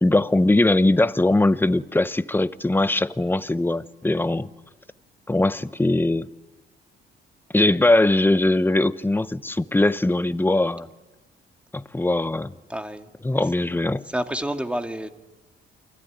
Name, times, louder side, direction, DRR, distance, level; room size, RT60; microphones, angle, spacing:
voice 1, 0.0-4.5 5.3-6.3 7.5-10.9 11.7-12.5 13.2-14.0, left 2 dB, 10° left, 0.9 m, -21 dB
voice 2, 12.7-13.1 14.1-15.1, equal, 5° right, 2.0 m, -28 dB
28.5 x 21.0 x 9.9 m
cardioid pair, 90°, 20 cm